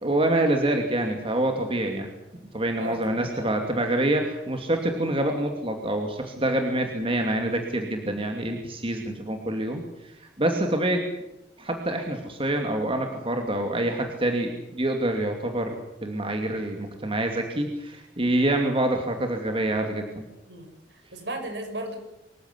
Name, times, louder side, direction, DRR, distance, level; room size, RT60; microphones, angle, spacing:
voice 1, 0.0-2.1 2.5-11.0 11.6-20.2, right 1 dB, 30° right, 4 dB, 2.7 m, -26 dB
voice 2, 2.8-3.5 20.5-22.0, right 1 dB, 70° right, 5 dB, 6.4 m, -36 dB
25.0 x 15.5 x 9.8 m, 0.91 s
head